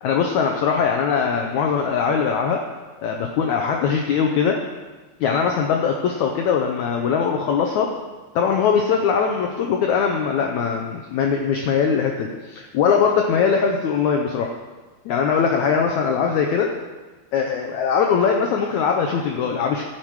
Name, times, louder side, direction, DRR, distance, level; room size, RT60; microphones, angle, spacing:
voice 1, 0.0-2.6 3.0-4.6 5.2-7.9 8.4-14.5 15.1-16.7 17.3-19.8, left 6 dB, 80° left, 2 dB, 1.7 m, -21 dB
15.0 x 7.6 x 4.8 m, 1.3 s
omnidirectional pair, 4.3 m